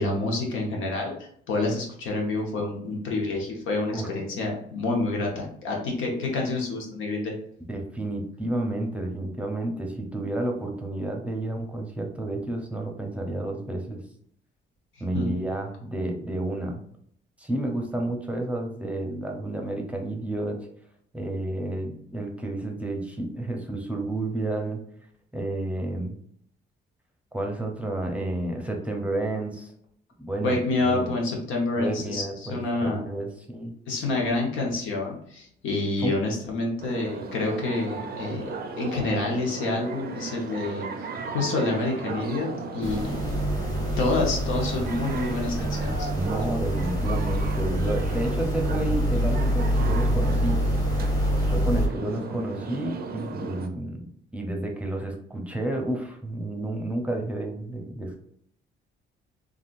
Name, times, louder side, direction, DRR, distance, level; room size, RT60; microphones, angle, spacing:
voice 1, 0.0-7.3 15.1-15.3 30.4-33.0 33.9-40.9 41.3-42.5 42.7-43.2 44.0-46.1, left 2 dB, 80° left, 0 dB, 1.0 m, -28 dB
voice 2, 7.7-14.0 15.0-16.8 17.4-20.6 21.1-24.8 25.3-26.2 27.3-29.7 30.2-30.6 30.8-31.1 31.8-33.7 36.0-36.2 46.1-50.6 51.5-58.2, right 1 dB, 5° right, 1 dB, 0.7 m, -30 dB
sound 1, 36.8-53.7, right 4 dB, 50° right, 0.5 m, -35 dB
sound 2, 42.8-51.9, equal, 20° left, 1.0 m, -26 dB
3.6 x 2.4 x 2.4 m, 0.65 s
cardioid pair, 90°, 20 cm